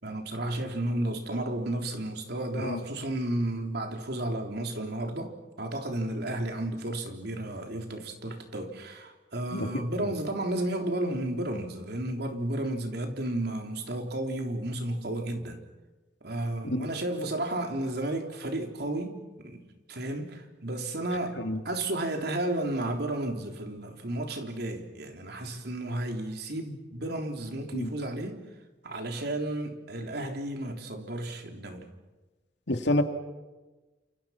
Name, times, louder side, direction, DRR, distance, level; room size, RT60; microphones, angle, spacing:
voice 1, 0.0-15.6 16.2-19.6 19.9-28.4 28.8-31.9, right 1 dB, 60° right, 3.7 m, -33 dB
voice 2, 32.7-33.0, left 1 dB, 70° left, 2.6 m, -28 dB
30.0 x 27.5 x 5.9 m
head